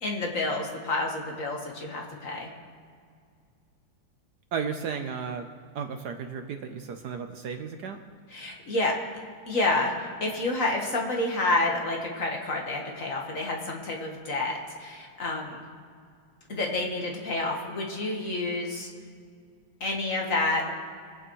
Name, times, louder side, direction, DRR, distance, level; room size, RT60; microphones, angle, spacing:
voice 1, 0.0-2.5 8.3-8.9 9.5-15.6 16.5-18.9 19.8-20.7, left 2 dB, 45° left, 0 dB, 1.6 m, -29 dB
voice 2, 4.5-5.5 5.7-8.0, right 6 dB, 65° right, 6 dB, 1.1 m, -34 dB
24.0 x 8.8 x 3.1 m, 2.2 s
omnidirectional pair, 2.1 m